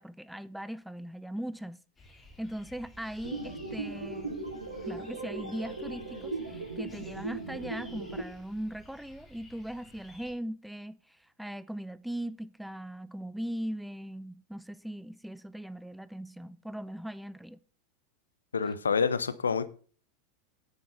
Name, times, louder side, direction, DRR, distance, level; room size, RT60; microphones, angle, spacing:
voice 1, 0.0-1.8 2.4-4.4 4.9-17.6 18.6-18.7, equal, ahead, 0.5 m, -39 dB
sound 1, 2.0-10.3, left 2 dB, 15° left, 2.9 m, -54 dB
sound 2, 3.2-8.2, right 3 dB, 80° right, 2.6 m, -38 dB
voice 2, 18.5-19.7, left 5 dB, 75° left, 0.8 m, -27 dB
10.0 x 8.2 x 4.2 m
figure-of-eight pair, 85°, 0 cm